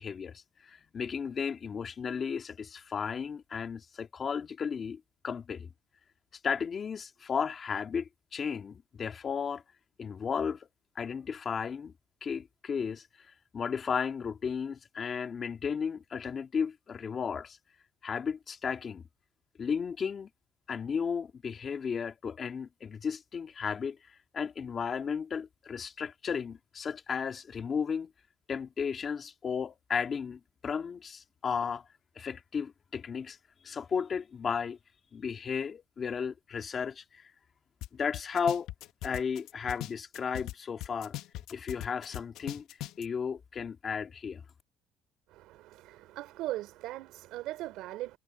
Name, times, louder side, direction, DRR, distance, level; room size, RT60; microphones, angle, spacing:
voice 1, 0.0-5.7 6.4-9.6 10.0-10.7 11.0-11.9 12.2-13.3 13.5-17.6 18.0-19.0 19.6-20.3 20.7-24.0 24.3-28.1 28.5-31.8 32.2-33.4 33.6-34.8 35.1-37.3 37.9-38.7 39.0-41.1 41.5-42.6 43.0-44.4, left 6 dB, 35° left, 1.9 m, -34 dB
sound 1, 37.8-37.9 38.1-40.5 40.8-43.0, left 16 dB, 75° left, 0.9 m, -39 dB
voice 2, 45.3-48.2, right 16 dB, 80° right, 3.7 m, -39 dB
cardioid pair, 120°, 0 cm